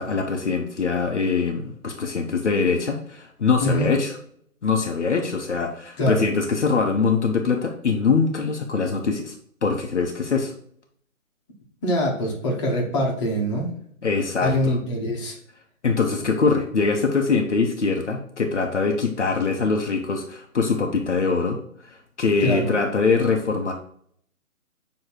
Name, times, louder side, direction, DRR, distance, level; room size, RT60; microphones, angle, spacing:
voice 1, 0.0-4.1 4.6-9.3 9.6-10.5 14.0-14.8 15.8-21.6 21.9-23.7, left 4 dB, 55° left, 2 dB, 1.0 m, -23 dB
voice 2, 3.6-3.9 6.0-6.2 11.8-13.7 14.4-15.4 22.4-22.7, equal, 20° left, -3 dB, 1.3 m, -24 dB
6.7 x 3.2 x 4.5 m, 0.64 s
figure-of-eight pair, 145°, 42 cm